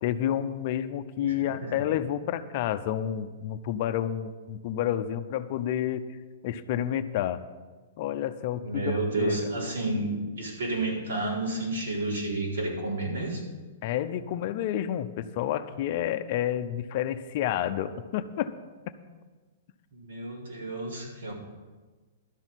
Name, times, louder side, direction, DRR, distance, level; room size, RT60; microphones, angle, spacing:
voice 1, 0.0-6.1 6.4-7.4 8.0-9.4 13.8-18.5 18.9-19.0, left 11 dB, 40° left, 10 dB, 0.6 m, -30 dB
voice 2, 1.2-1.8 8.6-13.4 19.9-21.3, right 2 dB, 80° right, -3 dB, 4.4 m, -31 dB
12.0 x 6.2 x 9.0 m, 1.3 s
hypercardioid pair, 170°, 0 cm